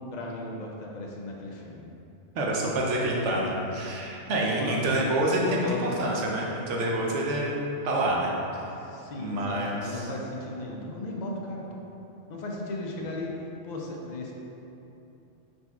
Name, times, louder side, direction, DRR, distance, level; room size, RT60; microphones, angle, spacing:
voice 1, 0.1-1.8 4.5-5.0 5.3-6.2 8.8-11.8 12.3-13.3 13.6-14.3, left 2 dB, 60° left, -1 dB, 0.4 m, -36 dB
voice 2, 2.3-7.5 7.8-8.3 9.2-10.0, right 1 dB, 80° right, -2 dB, 1.0 m, -27 dB
4.3 x 4.0 x 2.3 m, 2.9 s
omnidirectional pair, 1.2 m